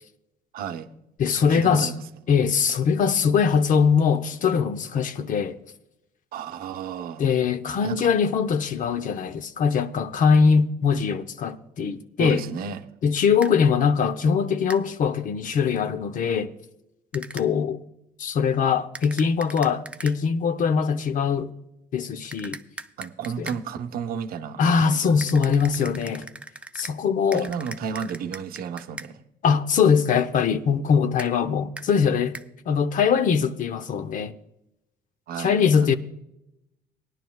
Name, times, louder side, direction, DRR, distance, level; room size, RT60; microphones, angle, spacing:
voice 1, 0.5-0.9 1.3-2.1 6.3-7.2 7.8-8.1 12.2-12.8 23.0-25.2 27.3-29.2 35.3-35.9, right 7 dB, 60° right, 0.7 m, -33 dB
voice 2, 1.2-1.9 2.3-5.6 7.2-12.4 13.0-16.5 17.1-17.8 18.2-21.5 21.9-22.6 23.4-23.5 24.6-26.3 26.7-27.5 29.4-32.4 32.7-34.3 35.4-35.9, left 6 dB, 50° left, 0.7 m, -22 dB
sound 1, 13.4-13.5 14.7-14.8 17.1-17.5 18.9-20.2 22.3-23.6 25.2-27.0 27.3-29.1 31.2-31.3 31.8-31.9 32.3-32.5, right 2 dB, 5° right, 0.4 m, -39 dB
18.5 x 10.5 x 2.3 m
cardioid pair, 110°, 17 cm